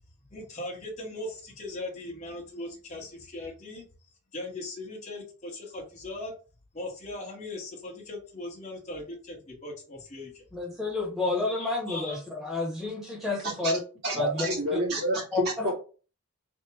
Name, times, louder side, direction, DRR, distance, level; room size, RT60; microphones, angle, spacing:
voice 1, 0.3-3.9 4.3-6.3 6.7-10.4 11.2-12.2, left 2 dB, 30° left, -2 dB, 1.3 m, -39 dB
voice 2, 10.5-13.8 14.1-14.5 15.3-15.7, left 3 dB, ahead, -3 dB, 1.4 m, -30 dB
voice 3, 14.0-15.7, right 1 dB, 50° right, -6 dB, 1.7 m, -28 dB
3.5 x 2.4 x 4.5 m, 0.36 s
head